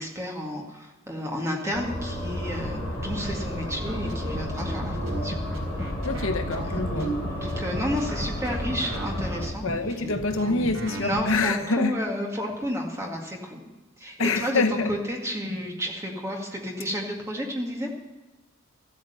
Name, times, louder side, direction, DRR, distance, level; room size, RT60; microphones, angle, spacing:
voice 1, 0.0-5.4 6.6-6.8 7.3-13.6 14.0-17.9, equal, 15° right, 2.0 m, -32 dB
sound 1, 1.7-9.5, left 1 dB, 10° left, 4.8 m, -32 dB
sound 2, 3.9-11.4, right 2 dB, 55° right, 4.3 m, -35 dB
voice 2, 6.0-7.1 9.6-11.9 14.2-14.9, left 3 dB, 70° left, 1.0 m, -26 dB
14.0 x 8.7 x 6.9 m
head